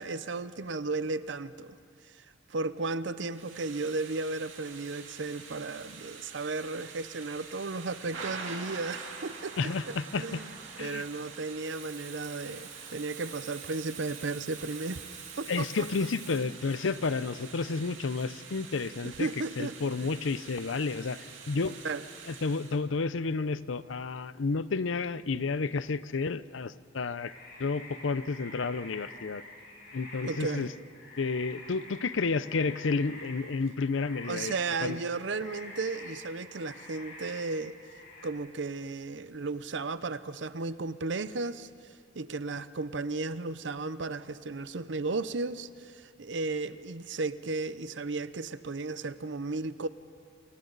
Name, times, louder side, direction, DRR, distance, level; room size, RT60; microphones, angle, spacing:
voice 1, 0.0-1.8 2.1-2.2 2.5-10.5 10.8-15.1 15.4-15.9 19.0-19.8 20.0-20.1 21.8-22.0 30.2-30.7 34.3-37.8 38.2-41.7 42.1-49.9, right 3 dB, 70° right, 14 dB, 0.7 m, -34 dB
Thunder / Rain, 3.3-22.8, right 5 dB, 90° right, 2.8 m, -46 dB
voice 2, 9.6-10.4 10.8-11.0 15.5-19.3 19.6-21.8 22.3-27.3 27.6-29.4 29.9-30.7 31.2-34.5 34.8-35.0, left 4 dB, 80° left, 16 dB, 0.6 m, -31 dB
Water tap faucet / Sink (filling or washing), 10.6-19.8 20.1-20.3, right 7 dB, 45° right, 3.4 m, -49 dB
sound 1, 27.1-38.3, left 2 dB, 60° left, 7.0 m, -47 dB
28.5 x 28.0 x 4.0 m, 2.2 s
head